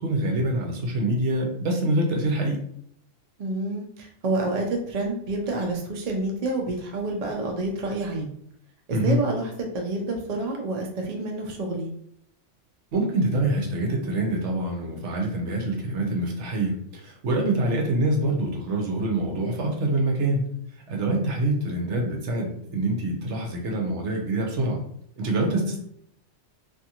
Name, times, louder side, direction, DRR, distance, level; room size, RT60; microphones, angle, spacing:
voice 1, 0.0-2.6 8.9-9.2 12.9-20.5 20.9-24.8 25.2-25.8, right 1 dB, 65° right, 1 dB, 1.0 m, -25 dB
voice 2, 3.4-8.3 8.9-11.9 17.5-17.9 25.5-25.8, right 2 dB, 50° right, 1 dB, 0.5 m, -28 dB
2.5 x 2.5 x 2.8 m, 0.68 s
omnidirectional pair, 1.3 m